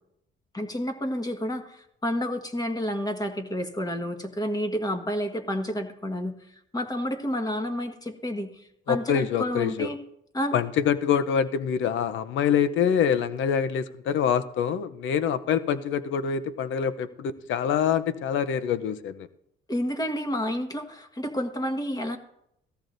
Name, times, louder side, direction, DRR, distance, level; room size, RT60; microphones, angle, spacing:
voice 1, 0.5-6.4 6.7-10.0 10.3-10.5 19.7-22.2, equal, 20° left, 6 dB, 1.5 m, -30 dB
voice 2, 8.9-9.9 10.5-19.3, left 8 dB, 75° left, 12 dB, 0.7 m, -25 dB
17.5 x 14.0 x 2.6 m, 0.76 s
cardioid pair, 90°, 20 cm